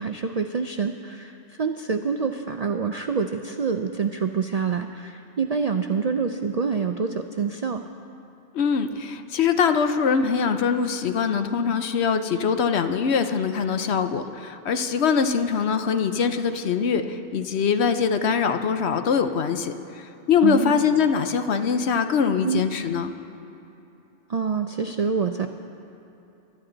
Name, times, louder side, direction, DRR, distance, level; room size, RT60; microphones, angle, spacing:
voice 1, 0.0-7.8 20.4-20.8 22.4-22.6 24.3-25.5, right 5 dB, 60° right, 6 dB, 0.4 m, -26 dB
voice 2, 8.5-23.1, left 6 dB, 65° left, 8 dB, 1.0 m, -23 dB
23.5 x 12.0 x 3.9 m, 2.9 s
omnidirectional pair, 1.3 m